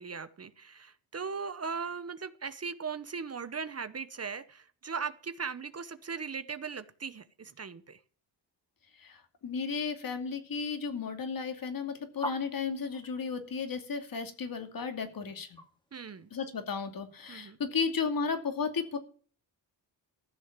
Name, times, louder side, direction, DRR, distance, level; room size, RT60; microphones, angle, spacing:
voice 1, 0.0-8.0 15.9-16.3 17.3-17.6, right 5 dB, 35° right, 14 dB, 0.9 m, -38 dB
voice 2, 9.0-15.6 16.3-19.0, left 5 dB, 50° left, 7 dB, 2.6 m, -34 dB
sound 1, 12.2-16.8, equal, 10° left, 2.4 m, -44 dB
14.5 x 6.4 x 7.3 m, 0.43 s
cardioid pair, 85°, 44 cm